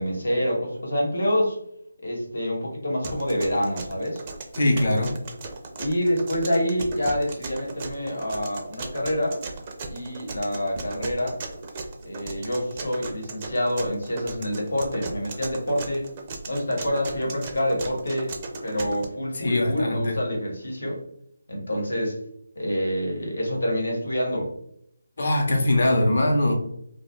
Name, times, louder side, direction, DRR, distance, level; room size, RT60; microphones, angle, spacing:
voice 1, 0.0-1.6 2.0-4.2 5.8-9.4 9.9-11.4 12.0-16.1 16.5-18.3 18.6-21.0 21.5-22.2 22.5-24.5, equal, 80° left, -1 dB, 1.0 m, -27 dB
sound 1, 3.0-19.1, right 3 dB, 30° right, 0.4 m, -37 dB
voice 2, 4.5-5.2 19.3-20.2 25.2-26.5, left 1 dB, 60° left, 1 dB, 0.7 m, -22 dB
2.3 x 2.2 x 3.0 m, 0.71 s
figure-of-eight pair, 160°, 0 cm